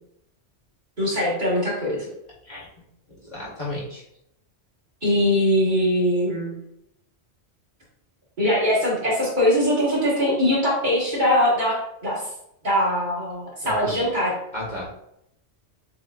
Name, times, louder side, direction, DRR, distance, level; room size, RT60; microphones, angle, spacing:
voice 1, 1.0-2.1 5.0-6.6 8.4-11.8 12.0-12.2 12.6-14.3, left 1 dB, 40° right, -7 dB, 1.8 m, -21 dB
voice 2, 3.2-4.0 13.6-14.1 14.5-14.9, left 1 dB, 40° left, -7 dB, 1.4 m, -33 dB
7.0 x 3.0 x 2.4 m, 0.78 s
omnidirectional pair, 1.2 m